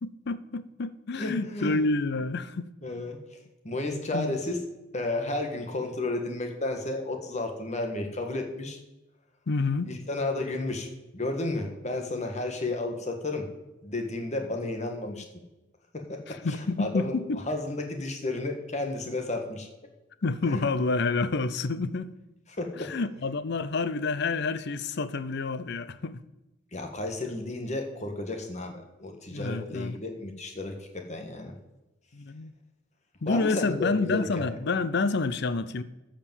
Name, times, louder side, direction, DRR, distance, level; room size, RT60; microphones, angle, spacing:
voice 1, 0.0-2.7 3.9-4.4 9.5-9.9 16.3-17.4 20.2-22.1 22.8-26.2 29.3-30.0 32.1-32.5 33.2-35.8, left 3 dB, 60° left, 14 dB, 0.6 m, -29 dB
voice 2, 1.2-1.8 2.8-3.2 3.6-4.6 4.9-8.8 9.9-13.5 13.8-15.2 15.9-17.1 17.5-19.7 20.5-20.6 22.5-22.9 26.7-31.5 33.2-34.5, left 2 dB, 35° left, 3 dB, 1.7 m, -32 dB
13.5 x 5.2 x 7.1 m, 0.99 s
head